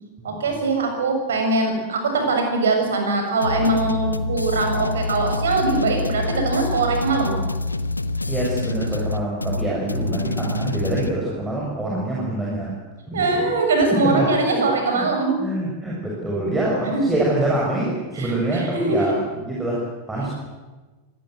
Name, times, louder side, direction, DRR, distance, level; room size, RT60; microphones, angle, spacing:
voice 1, 0.2-7.4 13.1-15.4 16.9-17.1 18.2-19.1, right 3 dB, 65° right, 4 dB, 6.9 m, -22 dB
sound 1, 3.4-11.1, left 2 dB, 80° left, 1.1 m, -26 dB
voice 2, 8.3-12.7 13.1-13.5 13.9-14.6 14.9-15.1 15.4-20.3, right 1 dB, 10° right, -4 dB, 6.9 m, -25 dB
25.0 x 19.5 x 8.0 m, 1.2 s
figure-of-eight pair, 90°, 0 cm